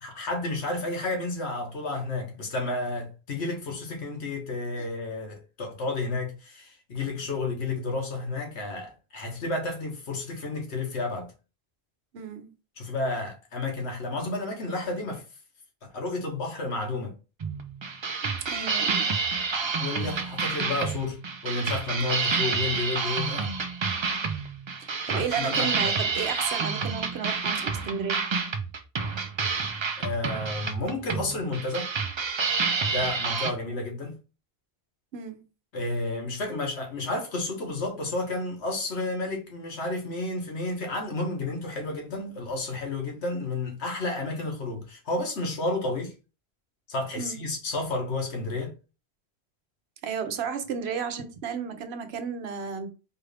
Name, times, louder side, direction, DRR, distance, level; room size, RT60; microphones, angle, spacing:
voice 1, 0.0-11.3 12.8-15.2 15.9-17.1 19.8-23.5 25.1-25.9 30.0-31.9 32.8-34.2 35.7-46.1 46.9-48.7, left 2 dB, 85° left, 1.4 m, -31 dB
voice 2, 12.1-12.5 18.5-19.1 19.6-19.7 24.8-28.2 35.1-35.4 47.2-47.4 50.0-52.9, right 7 dB, 75° right, 0.9 m, -33 dB
sound 1, 17.4-33.5, right 5 dB, 50° right, 0.3 m, -29 dB
4.6 x 2.5 x 3.3 m
omnidirectional pair, 1.1 m